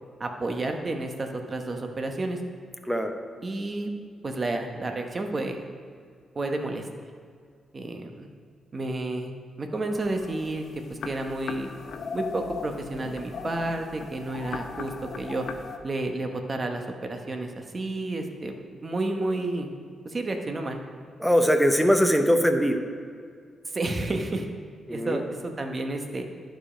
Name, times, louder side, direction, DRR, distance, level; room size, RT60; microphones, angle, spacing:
voice 1, 0.2-2.4 3.4-3.9 4.2-5.6 6.3-6.8 7.7-8.3 8.7-9.3 9.6-10.6 10.9-11.7 12.1-15.5 15.8-19.7 20.0-20.8 23.7-24.5 24.9-26.2, right 2 dB, 30° right, 4 dB, 1.0 m, -31 dB
sound 1, 9.9-15.8, left 5 dB, 65° left, 0.6 m, -38 dB
voice 2, 21.2-22.8 24.9-25.2, equal, ahead, 5 dB, 0.8 m, -21 dB
11.5 x 5.2 x 5.0 m, 2.1 s
cardioid pair, 100°, 0 cm